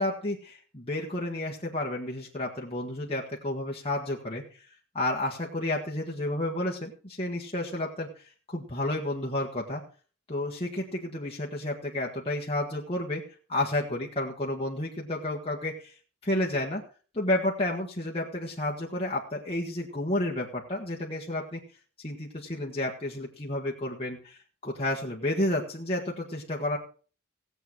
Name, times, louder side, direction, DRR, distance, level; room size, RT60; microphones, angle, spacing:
voice 1, 0.0-4.6 4.9-9.8 10.3-13.2 13.5-15.9 16.2-16.8 17.1-21.6 22.0-26.8, left 1 dB, 25° left, -3 dB, 1.6 m, -31 dB
17.0 x 8.0 x 4.6 m, 0.39 s
head